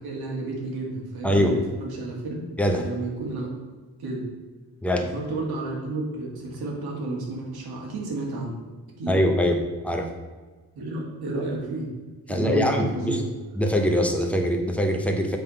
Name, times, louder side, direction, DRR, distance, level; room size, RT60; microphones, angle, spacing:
voice 1, 0.0-2.5 2.7-3.5 4.0-4.2 5.0-8.6 9.0-9.2 10.8-11.9 12.3-13.3, right 2 dB, 85° right, -1 dB, 1.9 m, -31 dB
voice 2, 1.2-1.6 2.6-2.9 4.8-5.1 9.1-10.1 12.3-13.2 13.6-15.4, equal, 5° left, 3 dB, 0.7 m, -23 dB
7.7 x 3.5 x 5.6 m, 1.3 s
wide cardioid pair, 170°, 36 cm